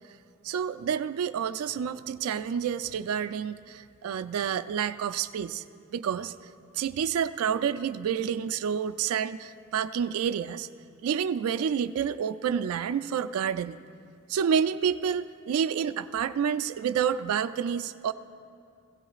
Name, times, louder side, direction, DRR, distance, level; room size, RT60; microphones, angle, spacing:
voice 1, 0.4-5.6 5.9-6.3 6.7-10.7 11.0-13.8 14.3-18.1, right 7 dB, 75° right, 10 dB, 0.3 m, -29 dB
18.5 x 16.5 x 2.4 m, 2.4 s
head